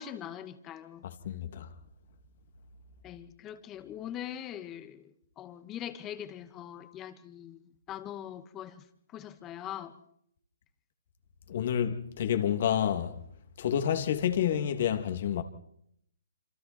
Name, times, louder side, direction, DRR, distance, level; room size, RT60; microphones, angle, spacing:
voice 1, 0.0-1.0 3.0-5.0 5.4-7.6 7.9-8.8 9.1-9.9, left 10 dB, 20° left, 2.1 m, -42 dB
voice 2, 1.0-1.7 11.5-13.2 13.6-15.4, left 9 dB, 50° left, 3.0 m, -29 dB
27.0 x 27.0 x 4.6 m
hypercardioid pair, 140°, 0 cm